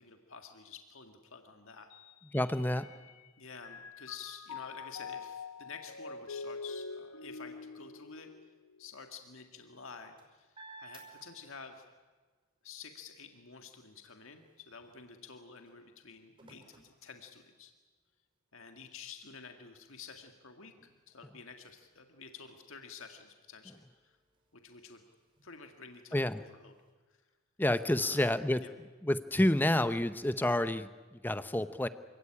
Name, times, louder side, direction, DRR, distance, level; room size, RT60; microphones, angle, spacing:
voice 1, 0.0-1.9 2.7-3.0 3.4-8.3 8.8-10.5 10.8-11.8 12.6-17.7 18.5-20.7 21.1-24.2 24.5-25.0 25.4-26.7 27.1-27.2 28.0-28.3 28.6-28.7, left 5 dB, 65° left, 5 dB, 1.8 m, -50 dB
Mallet percussion, 1.9-3.3 3.6-9.1, left 4 dB, 85° left, 1.1 m, -45 dB
voice 2, 2.3-2.9 26.1-26.4 27.6-28.6 29.0-31.9, left 1 dB, 10° left, 12 dB, 0.7 m, -29 dB
sound 1, 10.0-12.0 12.4-17.9 18.5-18.6 18.9-26.9, right 3 dB, 25° right, 5.3 m, -61 dB
27.0 x 17.0 x 9.9 m, 1.3 s
head